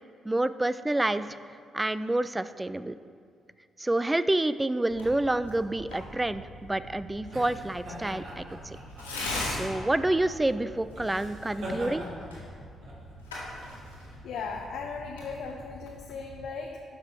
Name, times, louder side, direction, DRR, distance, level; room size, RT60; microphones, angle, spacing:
voice 1, 0.2-1.3 1.7-2.9 3.8-8.8 9.5-12.0, right 1 dB, 15° right, 14 dB, 0.4 m, -28 dB
Tearing, 4.9-16.4, left 1 dB, 90° left, 2.0 m, -41 dB
sound 1, 6.2-15.4, equal, 60° right, 2.7 m, -43 dB
voice 2, 14.2-16.8, left 5 dB, 65° left, 1 dB, 0.7 m, -37 dB
11.5 x 6.7 x 4.7 m, 2.2 s
figure-of-eight pair, 40°, 0 cm